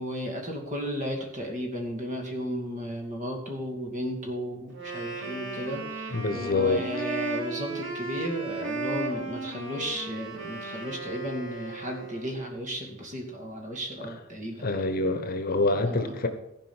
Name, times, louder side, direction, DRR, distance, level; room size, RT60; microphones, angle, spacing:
voice 1, 0.0-14.7 15.7-16.2, equal, 40° right, 1 dB, 2.5 m, -34 dB
Wind instrument woodwind instrument, 4.7-12.4, right 3 dB, 65° right, 3.2 m, -35 dB
voice 2, 6.1-6.8 14.6-16.3, left 2 dB, 45° left, 9 dB, 1.1 m, -26 dB
15.0 x 5.2 x 7.3 m, 0.86 s
head